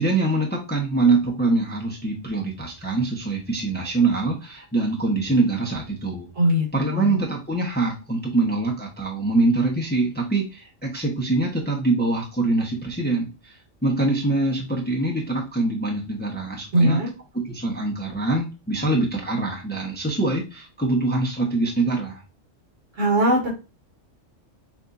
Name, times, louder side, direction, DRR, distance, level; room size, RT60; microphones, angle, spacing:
voice 1, 0.0-6.3 6.7-13.5 13.8-17.0 17.3-22.2, right 3 dB, 10° left, -1 dB, 0.8 m, -24 dB
voice 2, 6.4-7.2 16.7-17.1 23.0-23.5, equal, 75° right, -4 dB, 2.6 m, -20 dB
6.6 x 2.6 x 2.6 m, 0.29 s
omnidirectional pair, 1.3 m